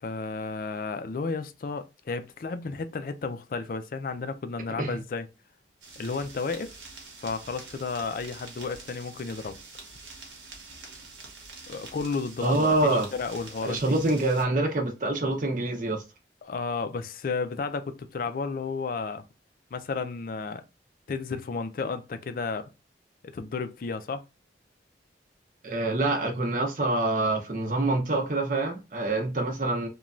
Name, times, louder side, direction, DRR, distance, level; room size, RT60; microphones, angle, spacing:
voice 1, 0.0-5.3 6.0-6.7 7.2-9.6 11.7-14.0 16.4-19.2 19.7-20.6 21.1-22.7 23.3-24.2, left 4 dB, 50° left, 0.3 m, -32 dB
sound 1, 5.8-14.4, right 3 dB, 85° right, 1.0 m, -46 dB
voice 2, 12.4-13.1 13.6-16.0 25.6-29.9, right 2 dB, 45° right, 0.7 m, -26 dB
3.0 x 2.2 x 2.4 m
head